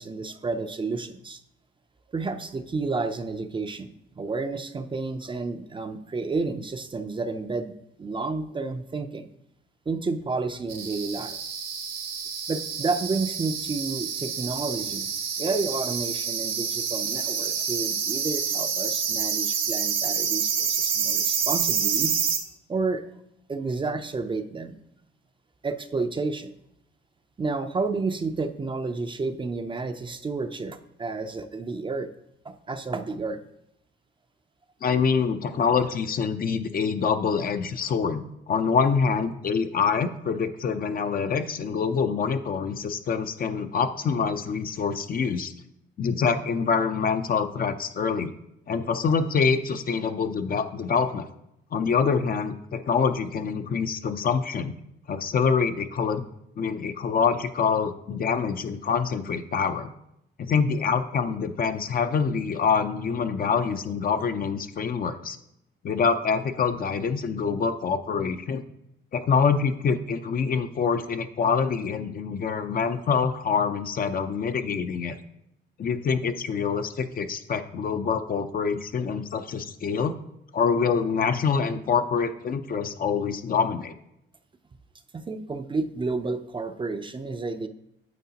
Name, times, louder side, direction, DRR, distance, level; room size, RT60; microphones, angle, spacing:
voice 1, 0.0-1.4 2.1-7.7 8.0-9.3 9.9-11.4 12.5-15.1 15.4-22.1 22.7-23.0 23.5-24.8 25.6-26.5 27.4-32.1 32.4-33.4 85.1-87.7, right 3 dB, 25° right, 8 dB, 0.5 m, -30 dB
sound 1, 10.7-22.4, right 7 dB, 80° right, 1.5 m, -28 dB
voice 2, 34.8-45.5 46.0-48.3 48.7-51.3 51.7-54.8 55.1-56.3 56.6-59.9 60.4-65.4 65.8-68.6 69.1-75.2 75.8-80.2 80.5-83.9, left 5 dB, 45° left, 8 dB, 0.6 m, -25 dB
9.3 x 7.0 x 2.9 m, 0.81 s
cardioid pair, 90°, 20 cm